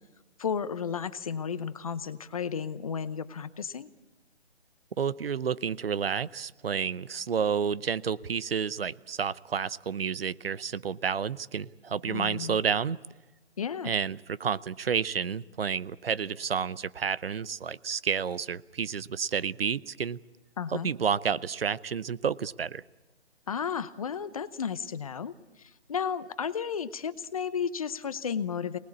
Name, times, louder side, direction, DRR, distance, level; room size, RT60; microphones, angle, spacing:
voice 1, 0.4-3.9 12.0-12.6 13.6-13.9 20.6-20.9 23.5-28.8, left 7 dB, 30° left, 15 dB, 0.8 m, -33 dB
voice 2, 5.0-13.0 13.8-20.2 20.7-22.8, right 6 dB, 55° right, 19 dB, 0.8 m, -30 dB
24.0 x 20.0 x 8.5 m, 1.1 s
figure-of-eight pair, 155°, 34 cm